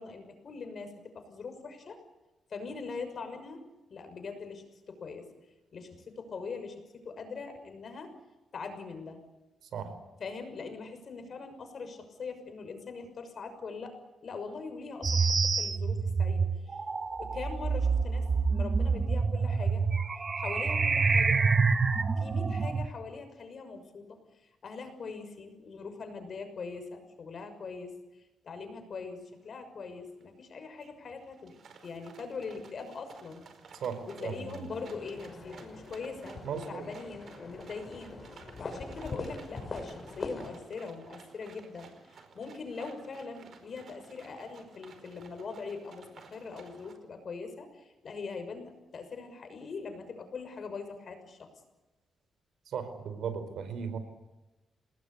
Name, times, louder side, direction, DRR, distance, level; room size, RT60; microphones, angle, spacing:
voice 1, 0.0-2.0 2.5-3.6 3.9-5.3 5.7-8.1 8.5-9.2 10.2-14.0 14.2-16.8 17.2-19.8 20.4-21.4 22.2-24.2 24.6-27.9 28.4-31.6 31.8-33.4 34.1-38.2 38.6-51.5, left 4 dB, 55° left, 8 dB, 6.2 m, -42 dB
sound 1, 15.0-22.9, right 4 dB, 35° right, 1.2 m, -27 dB
sound 2, 29.6-29.7 30.0-30.4 30.8-46.9, right 5 dB, 60° right, 4.8 m, -55 dB
voice 2, 33.8-34.6 36.4-36.9 52.7-54.0, right 6 dB, 80° right, 10 dB, 4.7 m, -36 dB
sound 3, 34.7-40.6, left 3 dB, 35° left, 7.0 m, -43 dB
28.5 x 19.5 x 8.3 m, 1.0 s
cardioid pair, 100°, 0 cm